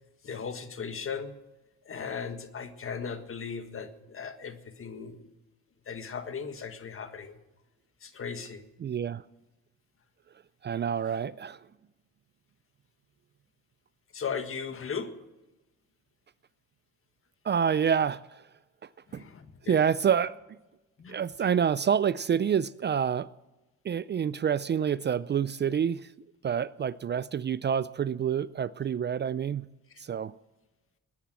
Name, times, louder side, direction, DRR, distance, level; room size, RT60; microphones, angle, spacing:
voice 1, 0.2-1.3 1.9-5.2 5.9-7.4 8.0-8.6 14.1-15.1 19.1-19.8 21.0-21.5, left 6 dB, 45° left, 1.8 m, -37 dB
voice 2, 8.8-9.2 10.6-11.6 17.4-18.2 19.1-19.2 19.7-20.4 21.1-23.3 23.8-26.1 26.4-29.7 30.0-30.3, right 8 dB, 35° right, 0.4 m, -27 dB
20.5 x 10.0 x 6.2 m
cardioid pair, 90°, 30 cm